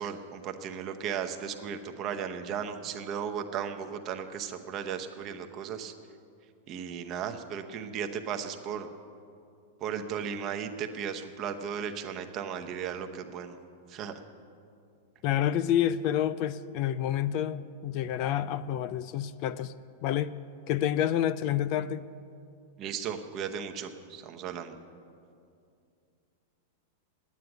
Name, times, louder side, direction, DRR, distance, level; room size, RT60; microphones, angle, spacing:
voice 1, 0.0-5.9 6.7-8.9 9.8-13.5 13.9-14.1 22.8-24.8, right 7 dB, 30° right, 5 dB, 0.9 m, -36 dB
voice 2, 15.2-19.7 20.0-20.3 20.7-22.1, left 11 dB, 40° left, 16 dB, 0.3 m, -28 dB
9.5 x 9.2 x 9.0 m, 2.4 s
supercardioid pair, 150°, 0 cm